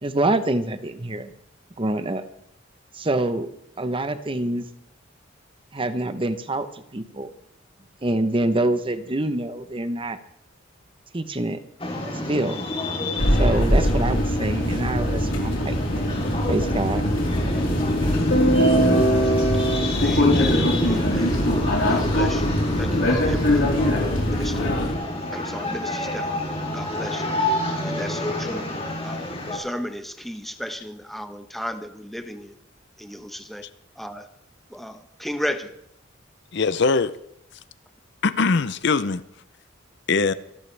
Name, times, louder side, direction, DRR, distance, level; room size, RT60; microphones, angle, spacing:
voice 1, 0.0-1.3 1.8-2.2 2.9-3.5 3.8-4.6 5.7-7.3 8.0-10.2 11.1-11.6 12.3-12.6 13.4-15.8 16.5-17.0, right 1 dB, 25° right, 0.9 m, -25 dB
sound 1, 11.8-29.6, left 1 dB, 30° left, 3.3 m, -28 dB
sound 2, 13.2-24.9, equal, 80° left, 3.9 m, -22 dB
voice 2, 20.0-21.4 21.9-22.5 22.8-23.7 24.3-24.9 25.3-26.3 26.7-27.2 27.8-28.7 29.0-32.5 33.0-33.6 34.0-34.3 34.7-35.7, equal, ahead, 1.0 m, -34 dB
voice 3, 36.5-37.1 38.2-39.2 40.1-40.3, left 4 dB, 60° left, 0.6 m, -21 dB
26.0 x 12.0 x 3.4 m
head